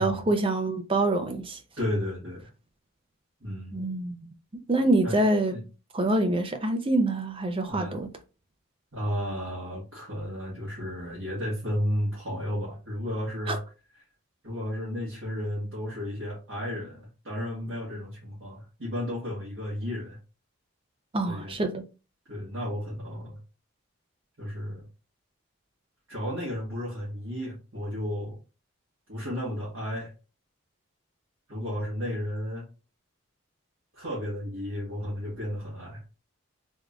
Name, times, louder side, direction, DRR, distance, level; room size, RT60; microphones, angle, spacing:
voice 1, 0.0-1.6 3.7-4.2 4.7-5.6 5.9-8.1 13.5-13.6 21.1-21.8, right 2 dB, 25° right, 0.5 m, -25 dB
voice 2, 1.8-2.5 3.4-3.8 5.0-5.2 5.5-5.6 7.7-8.0 8.9-13.6 14.4-20.2 21.2-21.6 22.3-23.4 24.4-24.9 26.1-28.4 29.1-30.1 31.5-32.7 33.9-36.0, equal, 60° right, 1.5 m, -33 dB
3.5 x 2.5 x 3.3 m
head